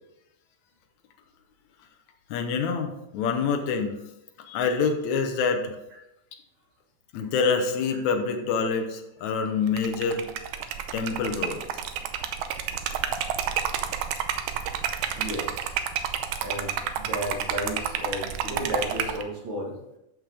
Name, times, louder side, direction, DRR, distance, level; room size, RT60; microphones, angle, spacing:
voice 1, 2.3-4.0 4.5-5.8 7.1-10.2 10.9-11.6, left 5 dB, 70° left, 5 dB, 2.3 m, -26 dB
Liquid, 9.7-19.2, right 8 dB, 80° right, 2.2 m, -30 dB
voice 2, 15.1-15.7 16.4-19.8, equal, 45° right, -2 dB, 2.0 m, -33 dB
13.0 x 6.5 x 3.5 m, 0.86 s
omnidirectional pair, 3.7 m